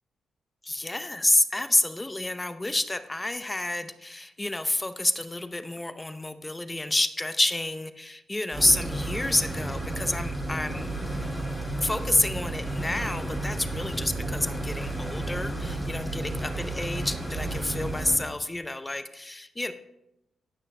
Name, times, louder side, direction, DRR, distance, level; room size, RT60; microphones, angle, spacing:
voice 1, 0.6-10.9 11.8-19.7, left 2 dB, 20° left, 10 dB, 0.7 m, -28 dB
sound 1, 8.5-18.2, right 2 dB, 5° right, 3.6 m, -32 dB
18.0 x 6.2 x 2.2 m, 0.88 s
supercardioid pair, 45°, 0 cm